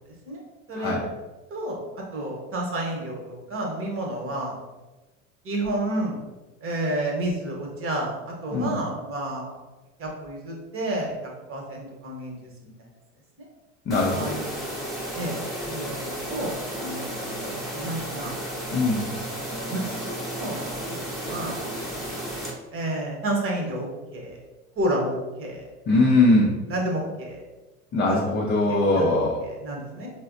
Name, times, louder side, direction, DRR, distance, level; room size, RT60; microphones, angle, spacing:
voice 1, 0.7-1.1 8.5-8.7 13.9-14.4 18.7-19.1 25.9-26.6 27.9-29.4, left 2 dB, 30° left, -2 dB, 0.5 m, -21 dB
voice 2, 2.1-4.5 5.4-6.2 6.6-9.6 10.0-12.7 14.1-14.7 15.1-18.3 19.7-19.8 20.1-20.6 21.2-21.6 22.7-24.4 24.8-25.6 25.9-26.2 26.7-27.4 28.1-28.4 28.7-29.2 29.6-30.1, right 1 dB, 35° right, 0 dB, 1.0 m, -30 dB
sound 1, 13.9-22.5, right 1 dB, ahead, 0.8 m, -33 dB
3.8 x 2.0 x 2.5 m, 1.1 s
hypercardioid pair, 75°, 39 cm